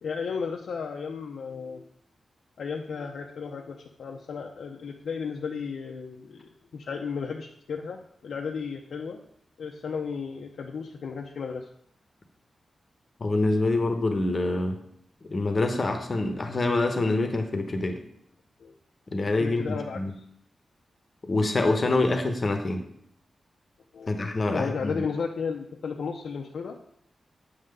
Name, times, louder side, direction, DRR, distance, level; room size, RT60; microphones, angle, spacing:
voice 1, 0.0-1.9 2.6-9.2 9.6-11.7 18.6-18.7 19.4-20.2 23.9-24.1 24.5-26.8, left 5 dB, 90° left, 0 dB, 0.7 m, -34 dB
voice 2, 13.2-14.8 15.3-18.0 19.1-20.1 21.2-22.9 24.1-24.9, left 2 dB, 35° left, 6 dB, 0.9 m, -26 dB
8.6 x 3.8 x 6.6 m, 0.68 s
wide cardioid pair, 150°, 0 cm